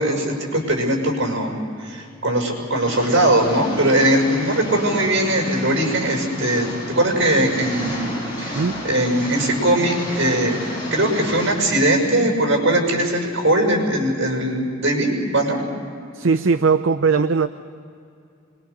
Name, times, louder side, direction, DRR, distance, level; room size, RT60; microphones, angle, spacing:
voice 1, 0.0-8.1 8.4-10.6 10.9-15.6, right 1 dB, 65° right, 1 dB, 6.1 m, -20 dB
Engine, 2.9-11.5, equal, 25° left, 7.6 m, -31 dB
voice 2, 16.1-17.5, right 5 dB, 80° right, 10 dB, 0.6 m, -19 dB
26.0 x 22.0 x 6.8 m, 2.4 s
head